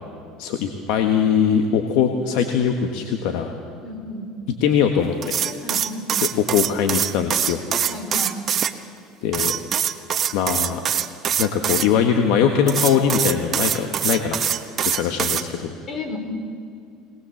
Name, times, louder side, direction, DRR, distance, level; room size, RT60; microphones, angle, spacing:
voice 1, 0.4-3.5 4.6-5.4 6.2-7.6 9.2-9.6 10.3-10.8 11.4-14.4 14.8-15.7, left 7 dB, 70° left, 5 dB, 1.5 m, -21 dB
voice 2, 3.8-4.3 5.6-6.2 7.9-8.4 15.9-16.2, left 2 dB, 40° left, 5 dB, 4.8 m, -32 dB
sound 1, 5.2-8.7 9.3-11.9 12.7-15.4, right 9 dB, 40° right, 1.1 m, -23 dB
22.0 x 19.5 x 7.3 m, 2.3 s
supercardioid pair, 95°, 0 cm